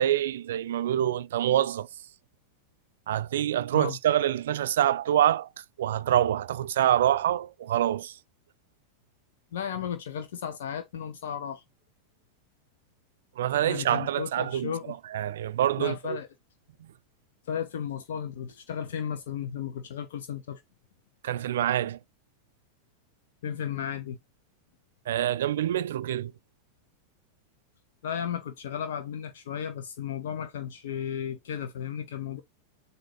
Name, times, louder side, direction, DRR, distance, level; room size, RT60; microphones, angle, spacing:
voice 1, 0.0-1.9 3.1-5.5 5.8-8.1 13.4-14.7 15.1-16.2 21.2-22.0 25.1-26.3, right 11 dB, 60° right, 0.4 m, -26 dB
voice 2, 9.5-11.6 13.7-15.0 15.8-16.3 17.5-20.6 23.4-24.2 28.0-32.4, left 8 dB, 60° left, 0.9 m, -34 dB
7.5 x 2.6 x 4.7 m
figure-of-eight pair, 90°, 0 cm